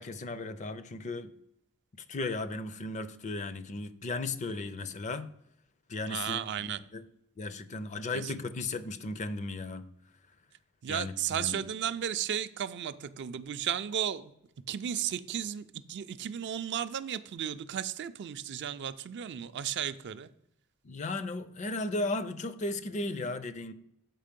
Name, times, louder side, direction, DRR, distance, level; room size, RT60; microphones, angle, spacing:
voice 1, 0.0-1.3 1.9-5.3 5.9-7.0 7.4-9.9 10.9-11.6 20.8-23.7, left 2 dB, 30° left, 0.4 m, -36 dB
voice 2, 6.1-6.8 8.1-8.3 10.8-14.3 14.7-20.3, right 9 dB, 50° right, 0.4 m, -34 dB
7.5 x 5.1 x 5.2 m
head